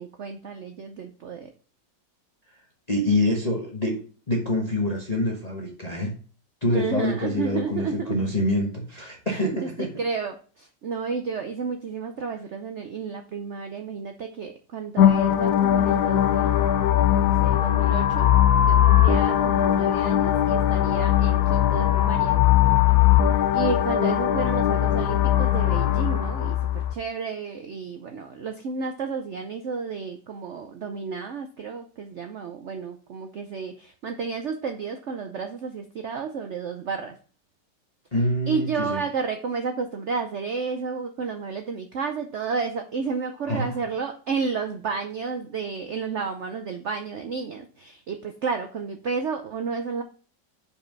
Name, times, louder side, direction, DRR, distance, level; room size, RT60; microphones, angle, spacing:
voice 1, 0.0-1.5 6.7-8.2 9.3-16.6 17.1-18.3 18.7-22.4 23.5-37.2 38.5-50.0, right 5 dB, 75° right, 6 dB, 0.6 m, -32 dB
voice 2, 2.9-4.0 4.3-6.2 6.6-9.9 38.1-39.0 43.5-43.8, left 1 dB, 25° left, 0 dB, 1.0 m, -25 dB
sound 1, 15.0-26.9, left 11 dB, 70° left, 1.0 m, -20 dB
5.4 x 5.0 x 5.2 m, 0.40 s
omnidirectional pair, 2.0 m